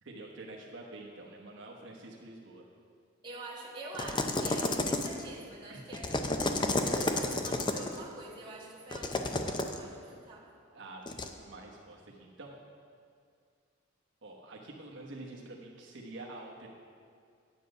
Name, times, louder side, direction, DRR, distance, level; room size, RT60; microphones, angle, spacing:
voice 1, 0.0-2.6 5.7-5.9 10.7-12.6 14.2-16.7, right 2 dB, 65° right, -2 dB, 1.1 m, -47 dB
voice 2, 3.2-10.5, right 2 dB, 25° right, -4 dB, 1.5 m, -45 dB
sound 1, 3.9-5.3 5.9-8.0 8.9-9.8 11.1-11.3, left 2 dB, 25° left, 0.5 m, -31 dB
10.0 x 8.1 x 5.4 m, 2.2 s
head